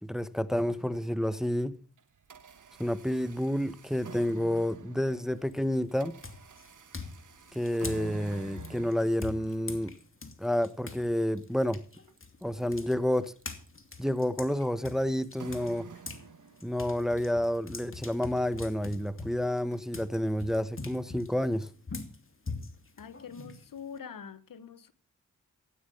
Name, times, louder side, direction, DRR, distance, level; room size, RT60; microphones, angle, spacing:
voice 1, 0.0-1.7 2.8-6.2 7.5-9.9 10.4-11.8 12.4-13.3 14.0-15.9 16.6-21.7, left 1 dB, ahead, 1.1 m, -29 dB
sound 1, 0.6-1.5 2.0-17.0, right 6 dB, 65° right, 1.5 m, -50 dB
sound 2, 5.3-5.7 6.2-11.0 11.4-16.3 16.6-24.0, left 3 dB, 40° left, 2.8 m, -43 dB
voice 2, 23.0-24.9, left 7 dB, 75° left, 1.4 m, -44 dB
15.0 x 9.4 x 7.1 m
cardioid pair, 55°, 34 cm